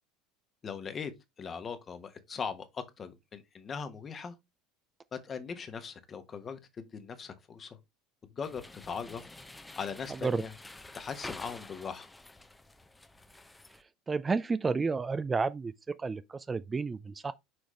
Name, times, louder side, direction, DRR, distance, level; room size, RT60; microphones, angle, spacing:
voice 1, 0.6-1.1 1.4-4.3 5.1-7.8 8.4-9.3 9.8-10.5 10.9-12.1, left 6 dB, 30° left, 1.2 m, -40 dB
sound 1, 8.4-13.8, left 2 dB, 10° left, 0.7 m, -49 dB
voice 2, 10.1-10.4 14.1-15.7 16.0-17.3, right 4 dB, 20° right, 0.4 m, -31 dB
6.2 x 4.7 x 3.2 m
hypercardioid pair, 75°, 0 cm